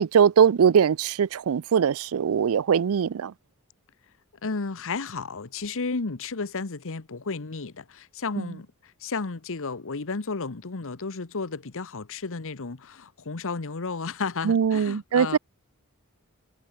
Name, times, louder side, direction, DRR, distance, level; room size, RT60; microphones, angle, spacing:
voice 1, 0.0-3.3 8.4-8.5 14.4-15.4, right 7 dB, 70° right, 0.4 m, -21 dB
voice 2, 4.4-15.4, left 4 dB, 65° left, 1.1 m, -33 dB
head